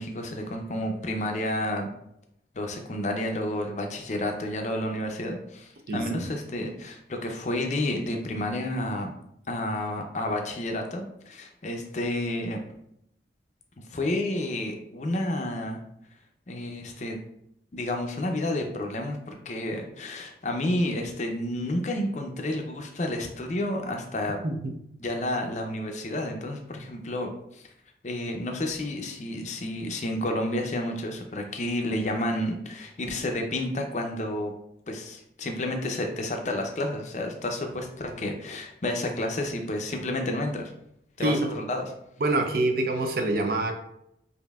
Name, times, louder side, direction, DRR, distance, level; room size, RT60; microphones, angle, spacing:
voice 1, 0.0-1.9 2.5-9.1 9.5-12.6 13.9-15.8 16.5-17.2 17.7-24.4 25.0-27.6 28.0-34.5 34.9-40.7 41.2-41.9, left 1 dB, 40° left, 3 dB, 0.5 m, -30 dB
voice 2, 5.9-6.2 24.4-24.7 41.2-41.5 42.2-43.7, right 2 dB, 55° right, 4 dB, 0.6 m, -26 dB
5.2 x 2.6 x 2.3 m, 0.77 s
head